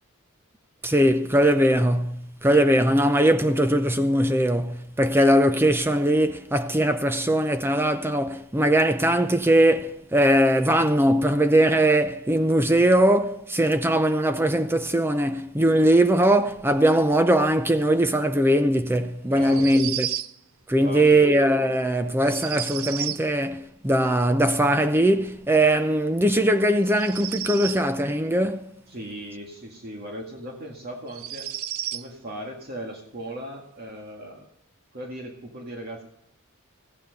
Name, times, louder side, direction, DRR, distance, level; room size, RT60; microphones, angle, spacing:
voice 1, 0.8-20.1 20.7-28.7, right 1 dB, 10° right, 0.6 m, -20 dB
voice 2, 19.3-19.9 20.7-21.3 28.9-31.5 31.9-34.5 34.9-36.0, right 1 dB, 45° right, 2.0 m, -37 dB
sound 1, 19.4-20.3 22.2-23.3 26.8-27.9 30.0-30.1 31.1-32.1, right 12 dB, 75° right, 0.5 m, -32 dB
15.0 x 9.3 x 5.2 m
head